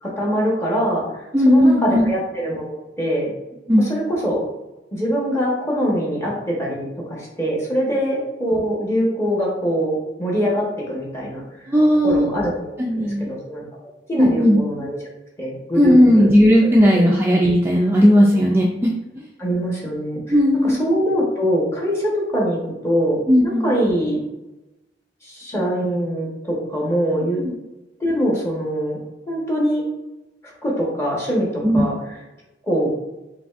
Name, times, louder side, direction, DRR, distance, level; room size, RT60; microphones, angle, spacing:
voice 1, 0.0-3.3 3.8-4.4 4.9-11.7 12.0-13.6 14.1-15.0 15.4-16.3 16.6-17.0 18.1-18.3 19.4-20.2 20.6-24.2 25.2-27.4 28.0-29.0 29.3-29.8 30.4-32.0 32.6-32.9, equal, 15° left, -4 dB, 1.0 m, -23 dB
voice 2, 1.3-2.1 3.7-3.9 11.7-12.3 12.8-13.3 14.1-14.6 15.8-18.9 20.3-20.9 23.3-23.7 27.4-27.5 31.6-31.9, equal, 15° right, -2 dB, 0.3 m, -15 dB
4.9 x 3.2 x 2.4 m, 1.0 s
head